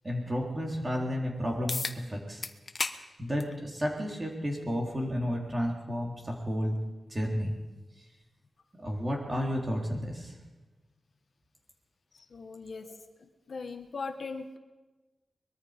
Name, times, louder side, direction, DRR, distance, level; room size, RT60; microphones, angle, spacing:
voice 1, 0.0-2.4 3.2-6.8 7.1-7.6 8.8-10.3 12.8-12.9, equal, 25° right, 0 dB, 3.8 m, -32 dB
sound 1, 1.7-2.0 2.4-3.0 3.4-3.5 4.6-4.7 9.6-9.7, left 3 dB, 35° left, 1.1 m, -33 dB
voice 2, 12.3-12.9 13.2-14.6, left 4 dB, 55° left, 6 dB, 1.3 m, -39 dB
23.5 x 21.5 x 5.2 m, 1.2 s
wide cardioid pair, 145°, 0 cm